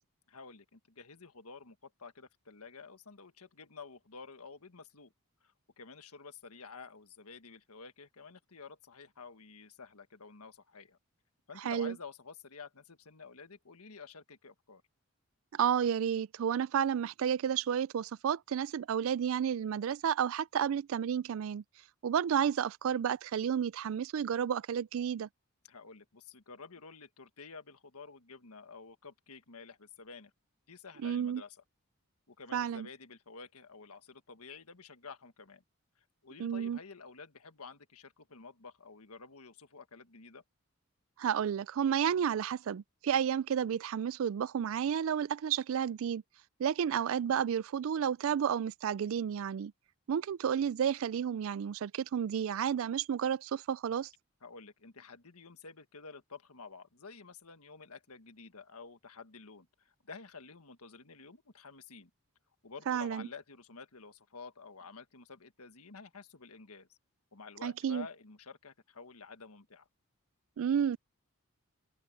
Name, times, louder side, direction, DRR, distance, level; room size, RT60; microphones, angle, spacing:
voice 1, 0.3-5.1 5.4-11.0 11.5-14.8 25.7-30.3 30.7-31.6 32.3-35.6 36.2-40.4 54.4-62.1 62.6-67.0 67.3-69.9, left 4 dB, 85° left, 1.6 m, -50 dB
voice 2, 11.6-12.0 15.5-21.6 22.0-25.3 31.0-31.4 32.5-32.9 36.4-36.8 41.2-46.2 46.6-49.7 50.1-54.1 62.9-63.3 67.6-68.1 70.6-71.0, right 8 dB, 65° right, 0.3 m, -31 dB
open air
head